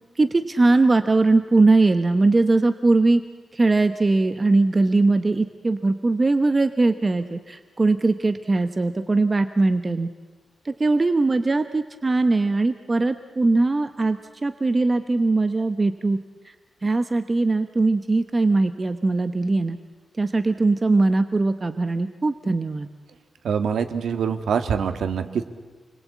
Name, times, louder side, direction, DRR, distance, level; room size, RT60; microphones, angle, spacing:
voice 1, 0.2-3.2 3.5-10.1 10.6-16.2 16.4-16.5 16.8-19.8 20.2-22.9, right 3 dB, 25° right, 9 dB, 0.9 m, -20 dB
voice 2, 23.4-25.4, right 7 dB, 80° right, 8 dB, 1.9 m, -24 dB
29.5 x 22.0 x 8.4 m, 1.4 s
wide cardioid pair, 150°, 0 cm